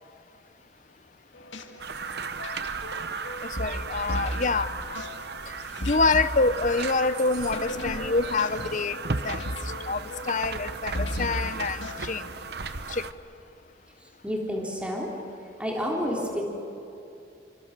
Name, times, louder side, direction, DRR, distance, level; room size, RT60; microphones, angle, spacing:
sound 1, 1.3-12.9, left 1 dB, 85° left, 2.0 m, -36 dB
sound 2, 1.8-13.1, right 4 dB, 60° right, 1.1 m, -35 dB
voice 1, 3.4-5.0 5.9-9.0 9.2-9.5 9.8-12.3 12.9-13.1, left 3 dB, 40° left, 14 dB, 0.8 m, -26 dB
voice 2, 14.2-15.1 15.6-16.4, equal, 5° right, -2 dB, 3.5 m, -29 dB
29.5 x 25.5 x 6.8 m, 2.8 s
head